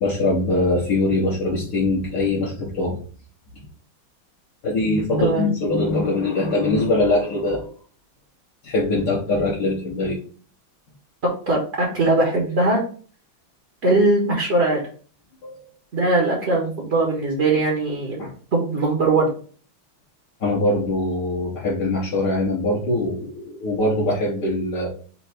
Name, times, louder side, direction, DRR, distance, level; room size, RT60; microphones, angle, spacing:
voice 1, 0.0-3.0 4.6-7.7 8.6-10.2 15.4-15.7 18.2-18.3 20.4-24.9, left 2 dB, 60° left, -5 dB, 1.5 m, -22 dB
voice 2, 5.2-5.5 11.5-12.8 13.8-14.8 15.9-18.2 18.5-19.3, right 2 dB, 40° right, -2 dB, 1.0 m, -20 dB
4.4 x 2.5 x 4.3 m, 0.42 s
omnidirectional pair, 2.3 m